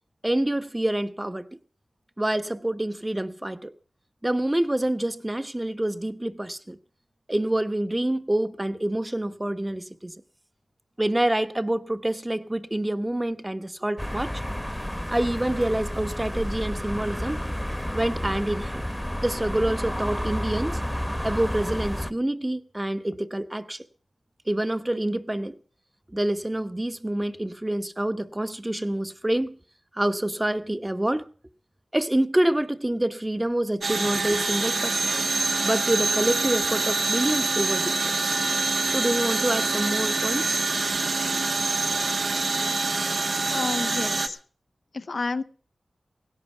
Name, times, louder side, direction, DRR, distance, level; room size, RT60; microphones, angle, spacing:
voice 1, 0.2-1.6 2.2-3.7 4.2-6.8 7.3-10.1 11.0-14.4 15.1-17.4 17.9-18.8 19.2-20.8 21.2-23.8 24.5-25.6 26.1-29.6 29.9-31.3 31.9-35.1 35.6-37.9 38.2-38.4 38.9-40.6, right 1 dB, 20° right, 1.1 m, -27 dB
sound 1, 14.0-22.1, equal, 5° left, 1.1 m, -31 dB
sound 2, 33.8-44.3, right 3 dB, 75° right, 1.5 m, -25 dB
voice 2, 43.5-44.4 44.9-45.4, left 3 dB, 65° left, 0.8 m, -30 dB
17.0 x 11.0 x 5.8 m
cardioid pair, 45°, 0 cm